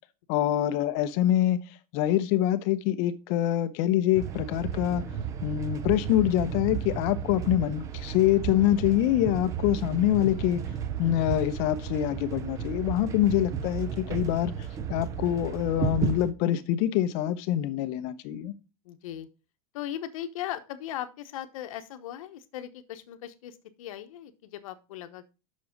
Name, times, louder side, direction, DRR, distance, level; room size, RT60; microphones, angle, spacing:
voice 1, 0.3-1.6 1.9-5.0 5.4-10.6 11.0-14.5 14.9-18.5, left 12 dB, 35° left, 0.7 m, -25 dB
sound 1, 4.1-16.3, right 8 dB, 15° right, 0.4 m, -33 dB
voice 2, 18.8-19.3 19.7-25.2, left 11 dB, 65° left, 1.0 m, -38 dB
7.4 x 6.1 x 5.2 m
supercardioid pair, 175°, 19 cm